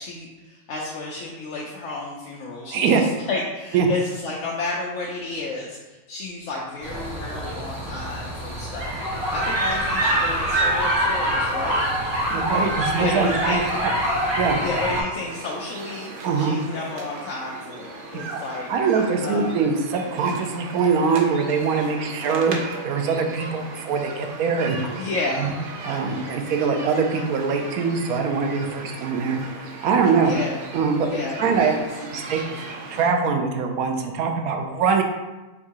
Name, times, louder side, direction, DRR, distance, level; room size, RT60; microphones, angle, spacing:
voice 1, 0.0-11.8 13.0-13.7 14.6-16.1 16.3-18.7 19.2-19.5 25.0-25.6 30.2-30.6 31.0-31.7 32.2-32.3, left 3 dB, 70° left, -3 dB, 0.9 m, -32 dB
voice 2, 2.7-3.0 3.7-3.9 12.3-13.9 14.4-14.6 16.2-16.6 18.3-18.4 18.7-22.6 22.8-24.8 25.4-25.5 25.8-29.4 29.8-30.3 30.7-31.1 31.4-31.7 32.1-32.6 32.9-35.0, right 5 dB, 85° right, 4 dB, 1.1 m, -23 dB
sound 1, 6.8-15.0, right 1 dB, 30° right, 1.3 m, -24 dB
sound 2, 15.1-33.1, right 3 dB, 60° right, 0.5 m, -37 dB
3.6 x 2.7 x 4.7 m, 1.1 s
omnidirectional pair, 1.5 m